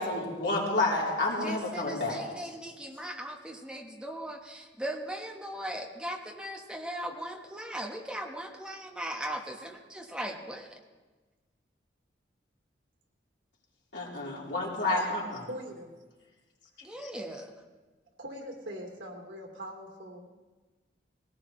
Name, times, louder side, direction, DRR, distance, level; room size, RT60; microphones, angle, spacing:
voice 1, 0.0-2.2 13.9-15.5, left 2 dB, 75° left, -4 dB, 3.7 m, -29 dB
voice 2, 1.4-10.8 16.8-17.5, right 1 dB, 5° right, 1 dB, 1.3 m, -39 dB
voice 3, 15.5-15.9 18.2-20.3, equal, 90° right, 2 dB, 2.9 m, -42 dB
19.5 x 17.5 x 3.3 m, 1.3 s
head